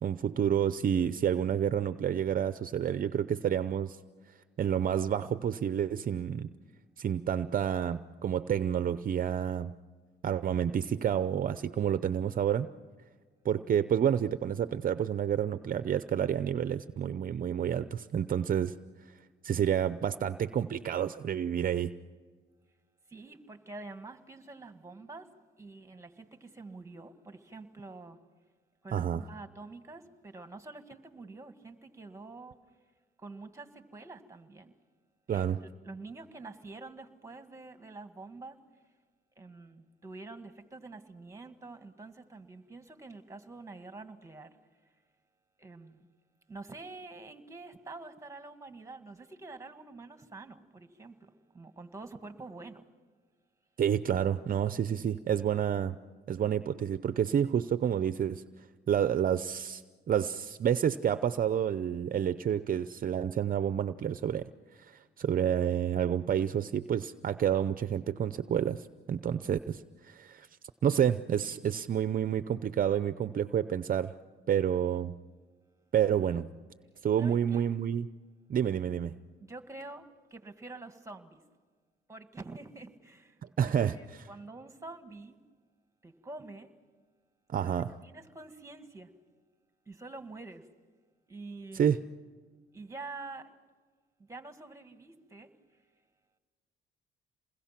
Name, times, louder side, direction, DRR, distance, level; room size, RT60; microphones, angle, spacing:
voice 1, 0.0-4.0 4.6-6.5 7.0-9.7 10.2-12.7 13.4-18.7 19.4-21.9 28.9-29.2 35.3-35.6 53.8-56.0 56.3-58.4 58.9-59.8 60.1-64.5 64.8-70.5 70.8-74.1 74.5-75.2 75.9-76.5 77.0-78.1 78.5-79.1 83.4-84.3 87.5-87.9 91.7-92.0, right 9 dB, 45° right, 13 dB, 0.6 m, -29 dB
voice 2, 23.1-25.3 25.6-28.2 28.8-32.6 33.2-34.8 35.3-38.6 39.4-44.6 45.6-46.0 46.5-52.8 77.2-77.7 79.4-81.4 82.1-85.4 86.0-86.7 87.6-87.8 88.0-89.1 89.9-90.7 91.3-91.9 92.7-93.6 94.2-95.5, right 3 dB, 15° right, 9 dB, 1.8 m, -47 dB
28.0 x 21.0 x 5.9 m, 1.5 s
cardioid pair, 90°, 20 cm